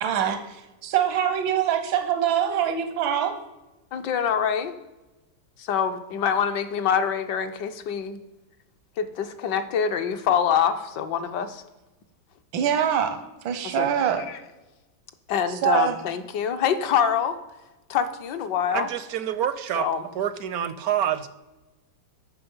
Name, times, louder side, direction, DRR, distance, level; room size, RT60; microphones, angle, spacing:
voice 1, 0.0-3.3 12.5-14.3 15.5-16.0, right 9 dB, 90° right, 8 dB, 1.6 m, -24 dB
voice 2, 3.9-4.7 5.6-8.2 9.0-11.6 13.8-13.9 14.3-14.4 15.3-17.4 17.9-18.9 19.8-20.0, left 8 dB, 70° left, 9 dB, 1.4 m, -25 dB
voice 3, 18.7-19.9 20.2-21.3, right 10 dB, 75° right, 13 dB, 0.8 m, -27 dB
13.5 x 6.0 x 5.4 m, 1.1 s
omnidirectional pair, 2.1 m